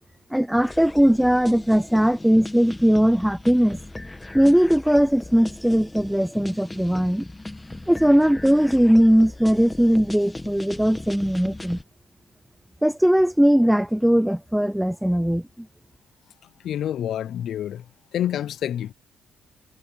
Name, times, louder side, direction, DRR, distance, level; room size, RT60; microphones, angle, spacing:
voice 1, 0.3-3.8 4.3-7.3 7.9-11.8 12.8-15.7, equal, 5° right, 0.3 m, -19 dB
sound 1, 0.6-11.8, left 2 dB, 15° left, 2.0 m, -38 dB
voice 2, 16.6-17.8 18.1-18.9, left 10 dB, 70° left, 0.4 m, -27 dB
cardioid pair, 90°, 0 cm